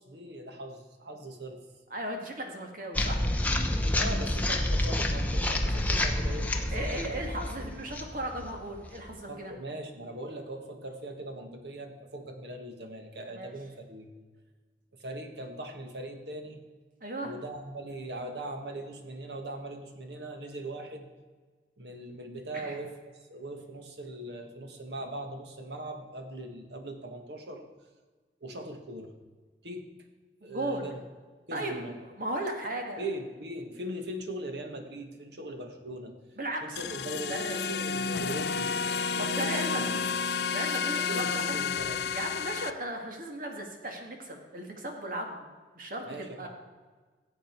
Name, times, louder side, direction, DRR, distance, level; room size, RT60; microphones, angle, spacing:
voice 1, 0.0-1.6 3.9-7.2 9.3-14.1 15.0-16.6 17.2-21.1 21.8-22.9 23.3-27.6 28.4-29.1 29.6-29.9 30.4-31.0 31.5-32.0 33.0-36.1 36.6-38.7 39.1-39.6 40.9-42.1 46.0-46.5, right 1 dB, 75° right, 5 dB, 1.7 m, -40 dB
voice 2, 1.9-3.3 6.7-9.6 13.3-13.5 17.0-17.3 22.5-22.8 30.4-30.8 31.5-33.1 36.4-36.8 37.3-37.6 39.2-40.0 40.5-41.6 42.1-45.5 45.8-46.5, right 1 dB, 50° right, 3 dB, 2.0 m, -36 dB
sound 1, 2.9-9.1, left 1 dB, 10° left, 0.9 m, -29 dB
sound 2, 36.8-42.7, left 5 dB, 65° left, 0.5 m, -31 dB
16.0 x 7.9 x 4.6 m, 1.4 s
head